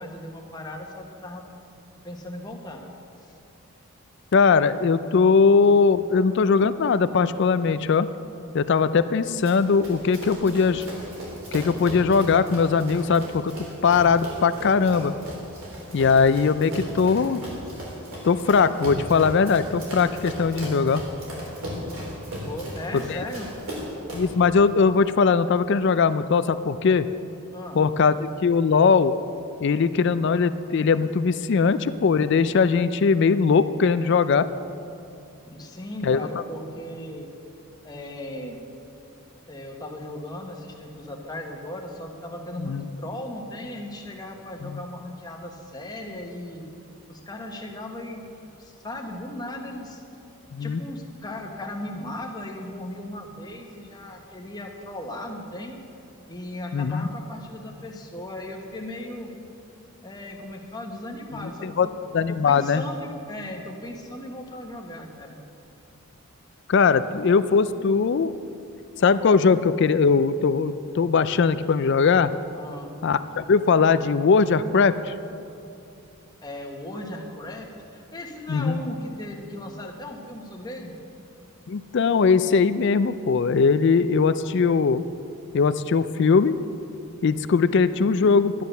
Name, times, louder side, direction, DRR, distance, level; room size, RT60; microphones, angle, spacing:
voice 1, 0.0-1.4 2.0-2.8 22.5-23.5 27.5-27.8 35.5-37.3 37.8-38.6 39.5-46.7 47.1-48.2 48.6-50.0 50.6-55.8 56.3-59.3 60.0-61.9 62.3-65.4 72.5-72.9 76.4-80.9, left 1 dB, 20° left, 1 dB, 1.2 m, -37 dB
voice 2, 4.3-8.1 8.5-10.9 11.5-13.5 13.8-15.1 15.9-17.4 18.2-21.0 22.9-23.2 24.1-27.1 27.7-28.1 28.4-29.1 29.6-34.5 36.0-36.4 42.6-42.9 44.6-44.8 50.5-50.8 56.7-57.1 61.4-61.9 62.1-62.8 66.7-68.3 69.0-72.3 73.0-75.1 78.5-78.8 81.7-85.0 85.5-86.5 87.2-88.6, left 5 dB, 55° left, 13 dB, 0.4 m, -20 dB
Run, 9.4-24.4, equal, 65° right, 3.8 m, -36 dB
11.5 x 10.0 x 6.7 m, 2.7 s
head